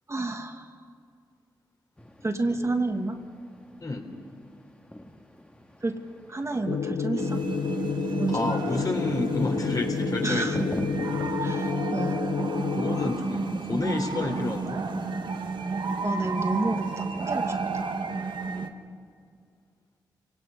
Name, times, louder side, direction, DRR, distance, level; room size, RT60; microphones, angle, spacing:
voice 1, 0.1-0.7 2.2-3.2 5.8-6.0 6.3-7.4 8.2-8.5 10.2-10.6 11.4-12.2 16.0-17.9, right 2 dB, 35° right, 4 dB, 1.8 m, -30 dB
sound 1, 2.0-11.7, left 1 dB, 10° left, 1.9 m, -43 dB
sound 2, 6.7-13.2, left 7 dB, 70° left, 0.6 m, -30 dB
sound 3, 7.2-18.7, right 4 dB, 65° right, 1.5 m, -31 dB
voice 2, 8.3-10.8 12.7-14.8, left 2 dB, 45° left, 2 dB, 3.7 m, -30 dB
28.0 x 18.0 x 5.5 m, 2.2 s
cardioid pair, 50°, 9 cm